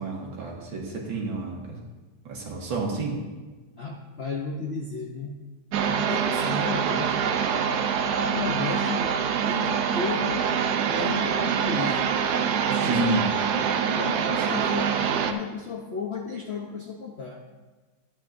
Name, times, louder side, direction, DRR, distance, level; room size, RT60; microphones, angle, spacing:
voice 1, 0.0-1.8 2.3-3.2 12.8-13.3, right 2 dB, 85° right, -2 dB, 2.4 m, -29 dB
voice 2, 3.8-5.3 5.9-7.4 8.3-9.1 9.4-10.5 10.9-12.0 12.8-12.9 14.0-17.4, left 5 dB, 60° left, 0 dB, 0.6 m, -33 dB
sound 1, 5.7-15.3, right 7 dB, 65° right, 1.1 m, -25 dB
13.0 x 9.1 x 2.6 m, 1.3 s
omnidirectional pair, 2.1 m